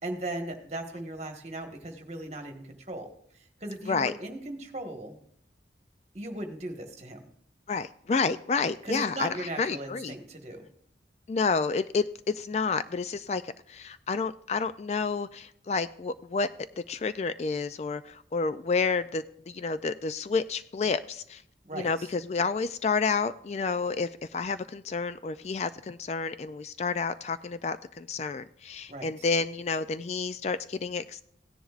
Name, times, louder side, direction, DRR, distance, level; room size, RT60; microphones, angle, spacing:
voice 1, 0.0-5.2 6.1-7.3 8.8-10.7 21.6-22.1 28.9-29.3, right 1 dB, 40° right, 4 dB, 1.4 m, -38 dB
voice 2, 7.7-10.1 11.3-21.4 21.7-31.2, left 4 dB, 35° left, 13 dB, 0.3 m, -30 dB
16.5 x 10.0 x 2.4 m, 0.70 s
head